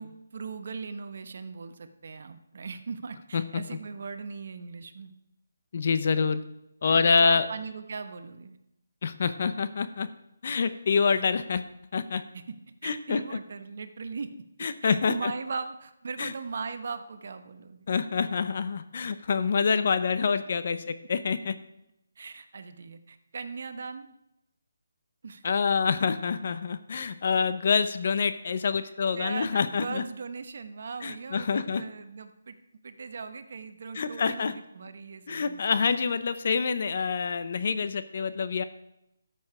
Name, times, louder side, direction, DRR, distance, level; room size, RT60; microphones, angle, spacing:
voice 1, 0.0-5.1 6.1-6.3 6.9-8.6 11.1-11.2 12.1-12.5 12.8-14.3 14.8-17.9 22.2-24.1 25.2-25.4 29.1-32.6 32.8-36.0, right 5 dB, 55° right, 9 dB, 1.0 m, -39 dB
voice 2, 5.7-6.4 6.8-7.5 9.0-10.1 10.4-11.6 11.9-12.2 12.8-13.4 14.6-15.3 16.2-16.3 17.9-21.5 25.4-30.0 31.0-31.8 33.9-34.5 35.3-38.6, left 5 dB, 50° left, 12 dB, 0.8 m, -26 dB
13.0 x 6.9 x 4.9 m, 0.84 s
hypercardioid pair, 165°, 0 cm